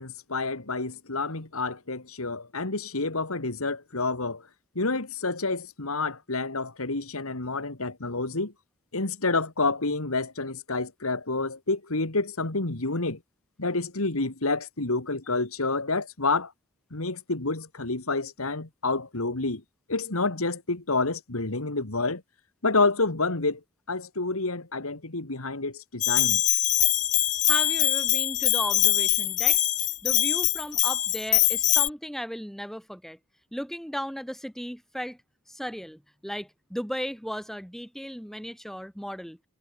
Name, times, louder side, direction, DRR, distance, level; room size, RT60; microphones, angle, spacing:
voice 1, 0.0-4.5 4.8-8.5 8.9-13.2 13.6-16.5 16.9-19.6 19.9-22.2 22.6-23.6 23.9-26.4, left 3 dB, 80° left, 2.3 m, -28 dB
Bell, 26.0-31.9, left 15 dB, 35° left, 0.4 m, -23 dB
voice 2, 27.5-29.6 30.0-33.2 33.5-35.2 35.5-39.4, equal, ahead, 4.6 m, -35 dB
head